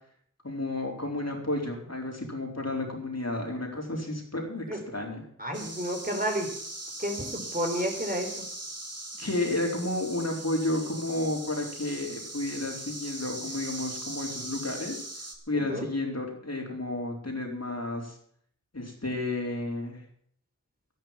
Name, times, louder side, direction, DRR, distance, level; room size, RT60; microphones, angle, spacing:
voice 1, 0.4-5.2 9.2-15.0 15.5-18.2 18.7-20.0, left 2 dB, 50° left, 0 dB, 4.2 m, -32 dB
voice 2, 5.4-6.5 7.0-8.4 15.7-15.9, equal, 25° right, 2 dB, 4.4 m, -31 dB
sound 1, 5.5-15.4, right 2 dB, 50° right, 2.9 m, -40 dB
12.5 x 11.0 x 7.3 m, 0.63 s
wide cardioid pair, 40°, 32 cm